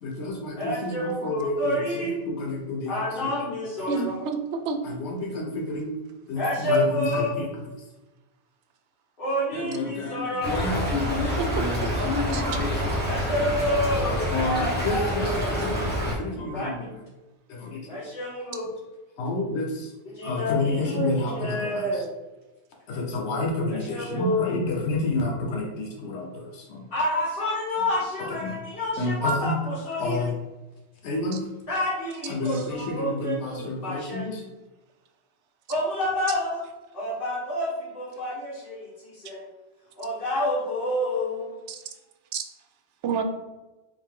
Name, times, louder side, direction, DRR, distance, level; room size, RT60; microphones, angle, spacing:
voice 1, 0.0-3.3 3.8-3.9 4.8-6.0 6.3-7.5 9.5-12.8 14.3-17.0 17.5-18.0 19.2-19.9 20.2-22.0 22.9-26.9 28.2-28.6 29.0-29.6 30.0-30.4 31.0-31.5 32.3-34.4, left 2 dB, 85° left, 1.0 m, -30 dB
voice 2, 0.6-2.1 2.9-4.3 6.3-7.4 9.2-10.6 13.0-15.7 16.3-17.0 17.9-18.7 20.1-22.1 23.7-24.6 26.9-30.2 31.7-34.4 35.7-36.6 36.9-39.5 40.0-41.6, left 1 dB, 55° left, 1.5 m, -29 dB
voice 3, 3.9-4.8 11.4-11.5 12.3-12.4 41.7-41.8 42.3-42.4 43.0-43.2, right 5 dB, 85° right, 0.9 m, -28 dB
Stream / Trickle dribble, 10.4-16.1, equal, 10° left, 0.9 m, -27 dB
3.8 x 2.7 x 3.6 m
omnidirectional pair, 1.1 m